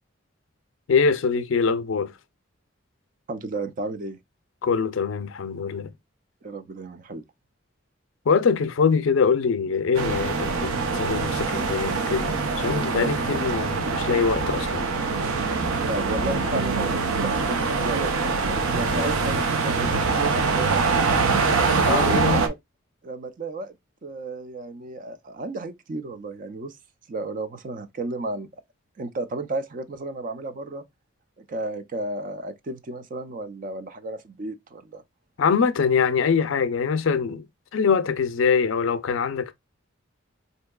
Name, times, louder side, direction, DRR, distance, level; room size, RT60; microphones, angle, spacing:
voice 1, 0.9-2.1 4.6-5.9 8.3-14.9 21.8-22.4 35.4-37.4 37.7-39.5, left 5 dB, 70° left, 0.4 m, -23 dB
voice 2, 3.3-4.2 6.4-7.2 12.9-13.4 15.8-20.8 21.8-22.5 23.0-23.7 24.0-26.8 27.1-28.5 29.0-30.8 31.4-35.0, right 2 dB, 40° right, 0.4 m, -33 dB
sound 1, 9.9-22.5, right 4 dB, 85° right, 0.6 m, -24 dB
4.4 x 2.7 x 2.2 m
head